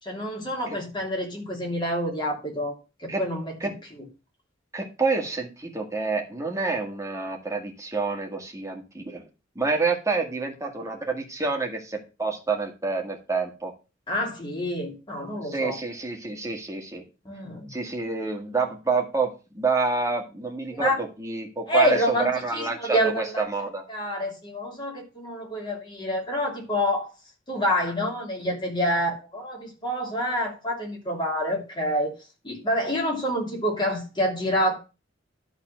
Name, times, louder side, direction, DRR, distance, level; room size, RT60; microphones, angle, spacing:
voice 1, 0.0-4.0 14.1-15.8 17.2-17.7 20.7-21.0 21.7-23.4 23.9-27.1 27.5-32.1 32.4-34.8, equal, 25° left, 0 dB, 2.8 m, -27 dB
voice 2, 4.7-9.2 9.6-13.7 15.5-17.0 17.7-20.9 21.2-23.8, right 4 dB, 15° right, 2 dB, 1.9 m, -28 dB
11.5 x 4.1 x 6.3 m, 0.30 s
head